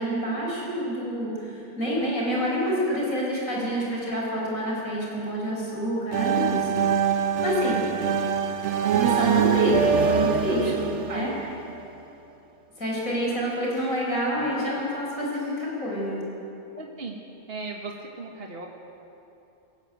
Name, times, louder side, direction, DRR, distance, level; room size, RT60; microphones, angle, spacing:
voice 1, 0.0-6.8 7.1-7.9 8.9-11.3 12.8-16.3, equal, 85° left, -4 dB, 6.1 m, -27 dB
sound 1, 6.1-11.9, right 7 dB, 60° right, 1.2 m, -24 dB
voice 2, 16.8-17.2 17.5-18.7, right 3 dB, 45° right, 0 dB, 1.8 m, -36 dB
22.0 x 15.5 x 9.2 m, 2.8 s
omnidirectional pair, 1.4 m